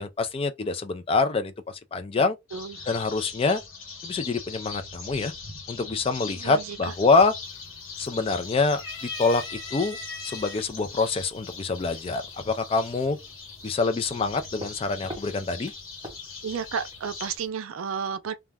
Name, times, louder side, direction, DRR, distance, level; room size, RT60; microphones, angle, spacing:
voice 1, 0.0-2.4 2.9-3.6 4.0-5.3 5.7-7.3 8.0-9.4 9.7-10.0 10.2-13.2 13.6-15.7, left 3 dB, 30° left, 0.3 m, -25 dB
sound 1, 2.5-17.4, left 5 dB, 85° left, 1.1 m, -41 dB
voice 2, 2.5-2.9 6.3-6.9 13.6-13.8 16.4-18.3, right 6 dB, 90° right, 0.4 m, -32 dB
sound 2, 6.9-7.3 7.6-8.3 8.7-10.6 11.5-11.6 12.8-13.3, left 3 dB, 60° left, 1.0 m, -39 dB
sound 3, 9.3-17.5, equal, 25° right, 0.9 m, -49 dB
2.3 x 2.2 x 3.3 m
head